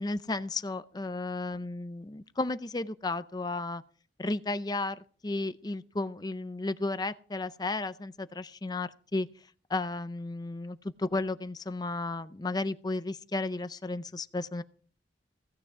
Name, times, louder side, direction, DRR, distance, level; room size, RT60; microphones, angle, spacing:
voice 1, 0.0-3.8 4.2-9.3 9.7-14.6, left 2 dB, 20° left, 13 dB, 0.5 m, -33 dB
16.5 x 9.7 x 4.8 m, 0.43 s
head